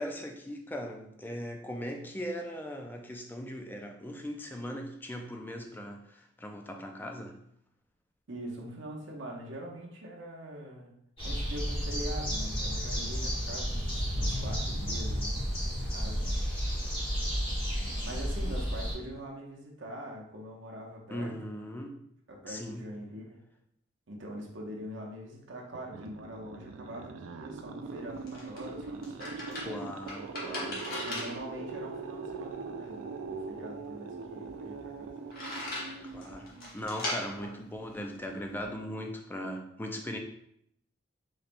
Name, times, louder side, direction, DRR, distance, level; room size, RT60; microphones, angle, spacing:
voice 1, 0.0-7.4 21.1-22.0 22.5-22.9 29.6-30.9 36.1-40.2, equal, 10° left, 3 dB, 0.4 m, -39 dB
voice 2, 8.3-11.0 11.2-16.4 18.0-21.7 22.3-23.4 24.1-29.9 31.0-35.1, equal, 70° right, -1 dB, 0.8 m, -43 dB
sound 1, 11.2-18.9, equal, 25° left, 1.3 m, -32 dB
sound 2, 25.7-36.9, right 4 dB, 90° right, 0.4 m, -42 dB
sound 3, 27.8-38.7, left 1 dB, 50° left, 1.0 m, -41 dB
4.0 x 3.2 x 2.5 m, 0.73 s
head